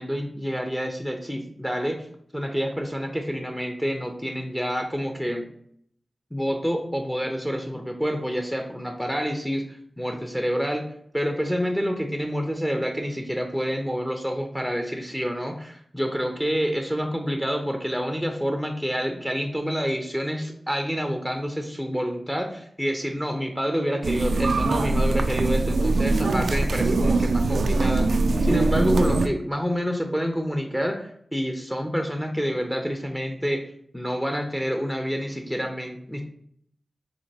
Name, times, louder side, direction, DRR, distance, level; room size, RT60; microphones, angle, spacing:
voice 1, 0.0-2.1 2.3-5.5 6.3-10.9 11.1-28.1 28.4-33.6 33.9-36.2, equal, 5° left, 4 dB, 0.7 m, -28 dB
sound 1, 24.0-29.3, right 2 dB, 85° right, 0.3 m, -22 dB
4.9 x 3.4 x 2.8 m, 0.66 s
cardioid pair, 45°, 0 cm